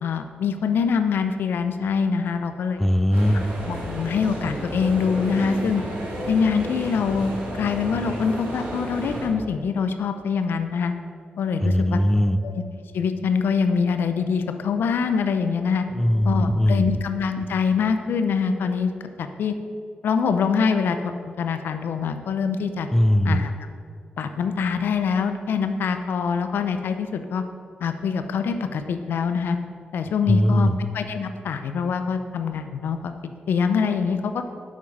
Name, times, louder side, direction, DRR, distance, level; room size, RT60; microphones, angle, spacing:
voice 1, 0.0-2.8 3.7-5.8 6.3-7.3 7.6-10.9 11.4-12.0 12.4-12.6 12.9-15.8 16.2-19.5 20.0-22.9 23.2-23.5 24.2-27.4 27.8-29.6 29.9-33.1 33.5-34.4, left 6 dB, 80° left, 8 dB, 0.5 m, -24 dB
voice 2, 2.8-3.5 11.6-12.4 15.9-16.9 22.9-23.4 30.3-30.8, equal, 10° left, 12 dB, 0.4 m, -20 dB
sound 1, 3.1-9.3, right 1 dB, 85° right, 1.7 m, -32 dB
7.3 x 5.5 x 4.6 m, 2.3 s
supercardioid pair, 45°, 4 cm